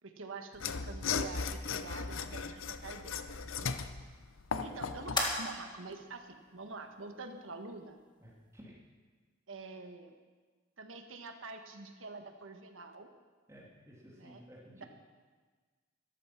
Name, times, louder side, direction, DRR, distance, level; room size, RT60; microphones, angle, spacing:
voice 1, 0.0-3.9 4.6-8.0 9.5-10.1 10.8-13.1 14.2-14.4 14.7-14.8, right 3 dB, 85° right, 6 dB, 1.4 m, -46 dB
Mechanisms / Sawing, 0.5-5.3, left 5 dB, 85° left, 0.7 m, -37 dB
sound 1, 1.7-8.6, left 2 dB, 25° left, 1.8 m, -43 dB
voice 2, 8.2-8.7 13.5-14.9, equal, 15° right, -4 dB, 2.5 m, -54 dB
13.5 x 13.0 x 5.9 m, 1.4 s
head